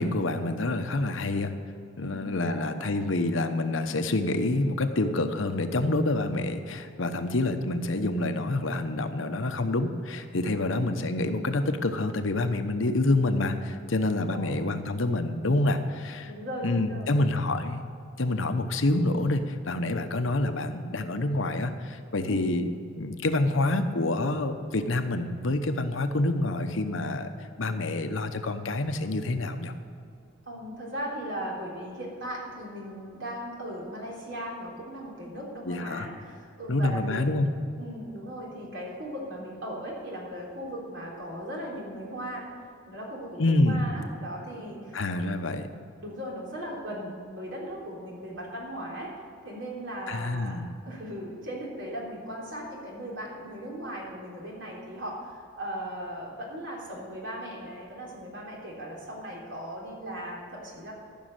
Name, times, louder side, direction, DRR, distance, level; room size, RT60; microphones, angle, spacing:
voice 1, 0.0-1.5 2.0-16.3 16.6-17.8 18.2-22.7 23.0-27.3 27.6-29.7 35.7-36.1 36.7-37.5 43.4-43.9 44.9-45.7 50.1-50.7, left 2 dB, 75° left, 8 dB, 0.9 m, -27 dB
voice 2, 2.5-2.9 10.7-10.8 14.0-14.6 16.2-17.3 22.2-22.5 30.5-37.2 37.8-42.5 42.9-45.4 46.0-49.1 49.4-50.6 50.9-60.9, equal, 65° right, -3 dB, 3.5 m, -38 dB
14.5 x 6.3 x 8.0 m, 2.5 s
head